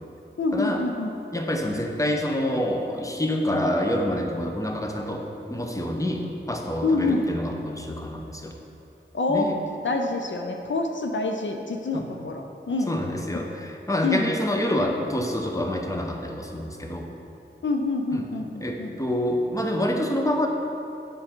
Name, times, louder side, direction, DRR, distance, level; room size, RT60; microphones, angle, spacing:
voice 1, 0.4-1.1 6.8-7.2 9.1-9.5 9.8-13.0 14.0-14.3 17.6-19.0, left 3 dB, 70° left, 3 dB, 0.5 m, -26 dB
voice 2, 1.3-8.5 9.3-9.6 11.9-12.2 12.9-17.1 18.1-18.2 18.6-20.5, left 1 dB, 15° left, 1 dB, 0.8 m, -27 dB
7.7 x 5.4 x 4.4 m, 2.7 s
wide cardioid pair, 45°, 20 cm